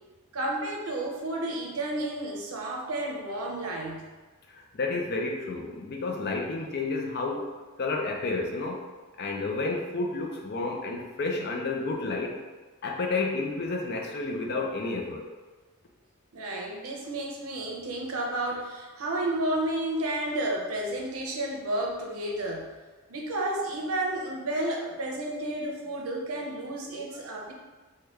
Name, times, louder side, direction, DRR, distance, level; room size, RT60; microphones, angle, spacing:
voice 1, 0.3-4.1 16.3-22.7 23.1-27.5, right 1 dB, 85° right, 0 dB, 0.6 m, -31 dB
voice 2, 4.5-7.5 7.8-8.8 9.2-12.4 12.8-15.3, left 3 dB, 50° left, 1 dB, 0.5 m, -31 dB
3.4 x 2.2 x 3.1 m, 1.3 s
head